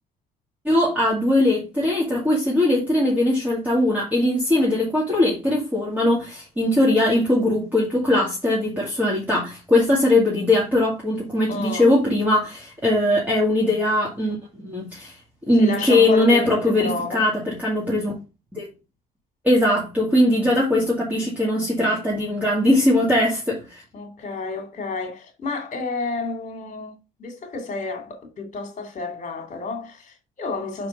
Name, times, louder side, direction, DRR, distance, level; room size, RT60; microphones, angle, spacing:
voice 1, 0.6-15.1 15.5-18.1 18.5-18.7 19.4-23.8, left 1 dB, 10° right, 2.2 m, -20 dB
voice 2, 11.5-11.9 15.6-17.3 20.4-20.7 23.9-30.9, left 3 dB, 45° left, 2.5 m, -31 dB
5.3 x 4.5 x 5.3 m
cardioid pair, 110°, 17 cm